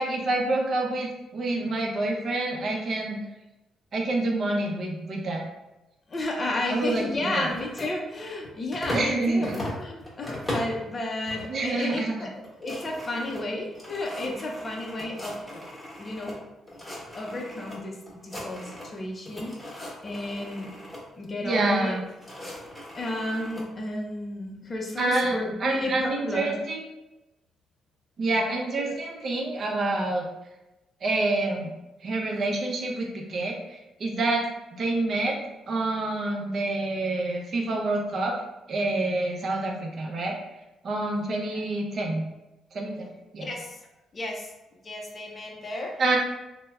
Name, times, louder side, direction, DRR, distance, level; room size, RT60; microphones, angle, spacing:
voice 1, 0.0-3.2 3.9-5.4 6.7-7.5 8.9-9.6 11.5-12.1 21.4-22.0 25.0-26.8 28.2-30.3 31.0-31.7 32.0-35.4 35.7-38.4 38.7-40.4 40.8-42.3 42.7-43.1 43.3-43.5 46.0-46.2, right 2 dB, 50° right, 0 dB, 0.5 m, -27 dB
voice 2, 6.1-15.6 16.0-16.4 17.1-20.7 21.2-22.0 23.0-26.6 28.8-29.0 41.5-41.6 43.4-43.8 44.1-44.5 44.8-46.0, left 1 dB, 35° left, 0 dB, 0.4 m, -33 dB
sound 1, 7.5-9.1 9.4-10.8 11.3-11.7 12.0-12.1 12.4-16.4 16.7-17.8 18.1-19.0 19.2-21.0 21.8-23.6, left 1 dB, 10° left, 0.9 m, -38 dB
3.1 x 2.0 x 2.3 m, 1.0 s
cardioid pair, 90°, 0 cm